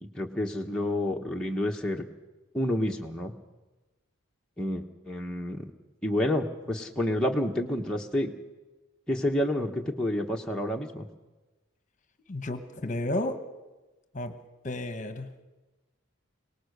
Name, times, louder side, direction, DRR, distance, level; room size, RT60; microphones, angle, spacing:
voice 1, 0.0-2.0 2.5-3.3 4.6-5.7 6.0-8.3 9.1-11.1, left 1 dB, 5° left, -1 dB, 1.0 m, -29 dB
voice 2, 12.3-13.4 14.1-14.3 14.6-15.3, left 1 dB, 35° left, 9 dB, 1.1 m, -32 dB
23.5 x 18.5 x 6.7 m, 1.1 s
head